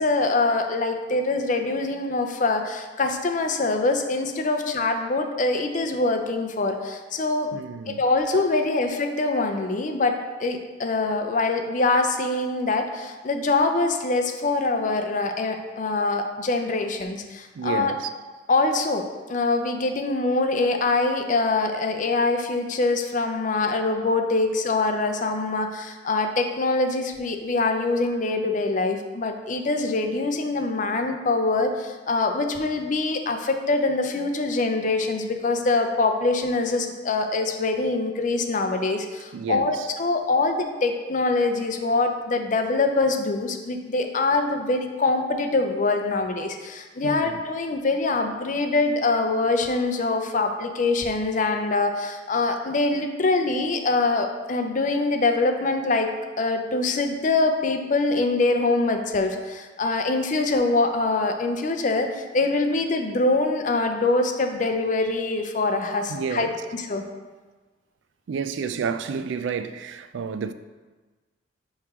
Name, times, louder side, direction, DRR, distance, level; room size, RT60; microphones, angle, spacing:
voice 1, 0.0-7.5 7.9-17.9 18.5-66.5 66.9-67.0, left 3 dB, 40° left, 0.5 m, -24 dB
voice 2, 7.5-8.0 17.5-18.1 39.3-39.9 47.0-47.4 66.1-66.6 68.3-70.5, right 6 dB, 75° right, 0.3 m, -30 dB
9.4 x 3.2 x 3.6 m
head